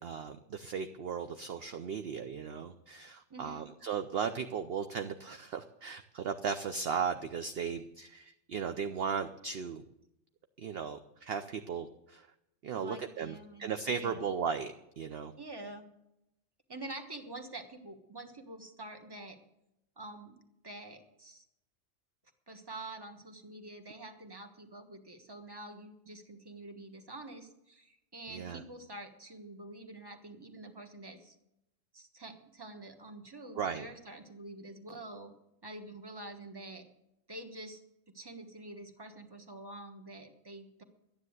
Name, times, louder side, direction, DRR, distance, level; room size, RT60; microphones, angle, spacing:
voice 1, 0.0-9.8 10.6-12.3 12.6-15.3 28.3-28.6 33.6-33.9, right 6 dB, 55° right, 8 dB, 0.8 m, -36 dB
voice 2, 3.3-3.7 12.7-14.3 15.4-15.9 16.7-19.4 20.0-20.4 20.6-21.4 22.5-31.4 31.9-35.3 35.6-36.9 37.3-37.8 38.1-40.8, right 2 dB, 20° right, 6 dB, 1.3 m, -47 dB
12.5 x 9.9 x 8.0 m, 0.85 s
omnidirectional pair, 1.3 m